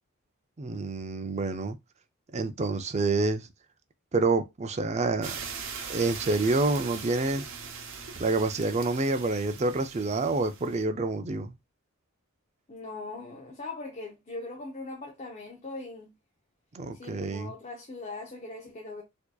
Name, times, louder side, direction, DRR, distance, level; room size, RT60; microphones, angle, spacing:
voice 1, 0.6-1.8 2.3-3.5 4.1-5.4 5.9-7.5 8.2-11.5 16.7-17.5, right 3 dB, 30° right, 0.4 m, -27 dB
sound 1, 5.2-10.8, right 6 dB, 60° right, 0.7 m, -40 dB
voice 2, 12.7-16.1 16.9-19.0, left 2 dB, 35° left, 0.7 m, -40 dB
4.5 x 2.8 x 2.3 m
head